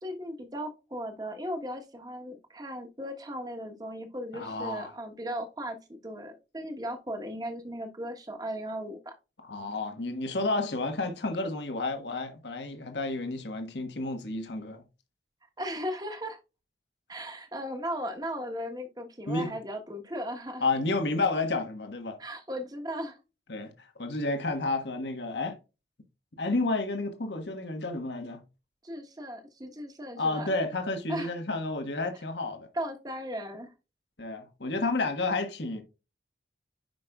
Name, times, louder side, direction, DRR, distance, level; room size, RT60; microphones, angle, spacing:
voice 1, 0.0-9.1 15.6-16.4 17.1-20.6 22.2-23.2 28.8-30.5 31.1-31.3 32.7-33.7, equal, 20° right, 1.2 m, -37 dB
voice 2, 4.3-4.9 9.4-14.8 19.3-19.5 20.6-22.2 23.5-25.6 26.4-28.4 30.2-32.7 34.2-35.8, left 2 dB, 80° left, 1.3 m, -31 dB
10.5 x 5.1 x 2.3 m
head